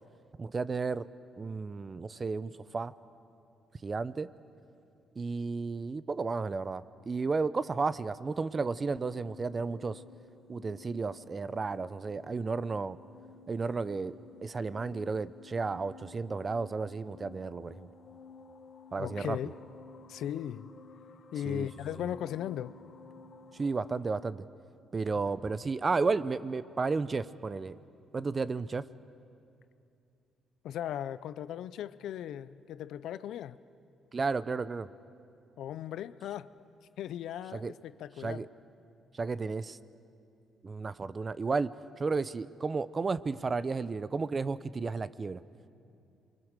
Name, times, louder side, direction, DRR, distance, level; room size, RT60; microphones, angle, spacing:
voice 1, 0.4-1.1 1.4-2.9 3.8-4.3 5.2-10.0 10.5-13.0 13.5-14.2 14.4-17.9 18.9-19.5 21.4-21.7 22.0-22.1 23.5-24.5 24.9-27.8 28.1-28.8 34.1-34.9 37.5-37.7 38.2-38.5 39.1-39.8 40.6-41.7 42.0-45.4, right 4 dB, 30° right, 16 dB, 0.7 m, -33 dB
sound 1, 8.5-24.3, left 5 dB, 50° left, 1.2 m, -54 dB
voice 2, 19.0-19.6 20.1-20.7 21.3-22.8 30.6-33.6 35.6-36.5 37.0-38.5, left 10 dB, 75° left, 15 dB, 0.6 m, -37 dB
29.0 x 23.5 x 6.7 m, 2.6 s
cardioid pair, 95°, 0 cm